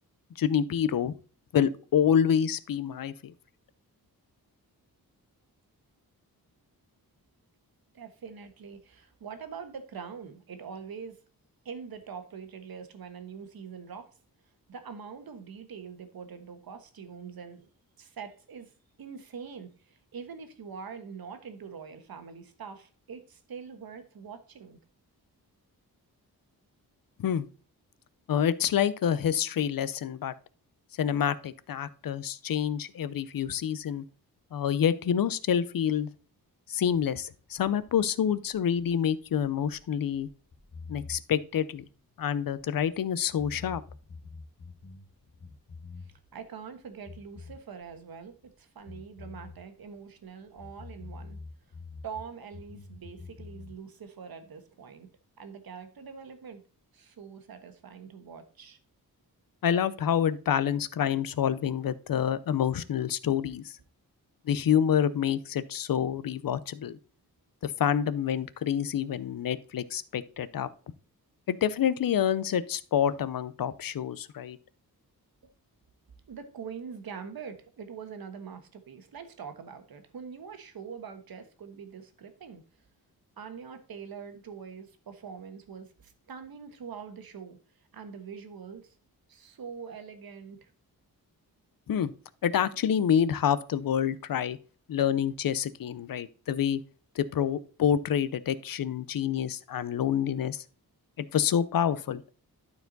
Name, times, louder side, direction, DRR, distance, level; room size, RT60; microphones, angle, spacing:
voice 1, 0.4-1.1 1.5-3.3 27.2-27.5 28.3-30.3 31.0-34.0 34.5-36.1 36.7-40.3 40.9-41.8 42.2-43.8 59.6-63.7 64.5-67.0 67.6-70.7 71.5-74.6 91.9-92.1 92.4-94.6 94.9-96.8 97.2-100.6 101.2-102.2, left 9 dB, 65° left, 0.6 m, -27 dB
voice 2, 7.9-11.2 11.6-14.1 14.7-17.7 18.0-18.7 19.0-24.8 46.0-51.4 52.0-55.1 55.4-56.6 56.9-58.8 76.3-82.6 83.4-89.0 89.3-90.7, right 6 dB, 70° right, 1.3 m, -44 dB
sound 1, 37.4-43.0 43.3-46.4 46.7-48.5 48.8-52.3 52.5-53.7, left 4 dB, 45° left, 1.4 m, -47 dB
12.0 x 4.6 x 3.9 m
wide cardioid pair, 125°, 37 cm